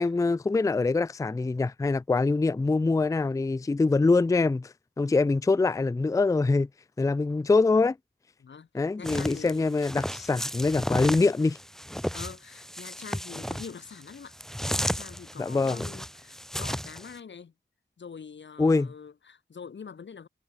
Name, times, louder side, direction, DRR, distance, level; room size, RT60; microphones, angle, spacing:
voice 1, 0.0-6.7 7.0-8.0 8.7-11.6 15.4-15.8 18.6-18.9, left 3 dB, 20° left, 0.3 m, -24 dB
voice 2, 8.4-9.7 12.1-14.4 14.8-17.5 18.0-20.3, left 6 dB, 75° left, 0.8 m, -45 dB
sound 1, 9.0-17.1, equal, ahead, 0.7 m, -34 dB
cardioid pair, 40°, 19 cm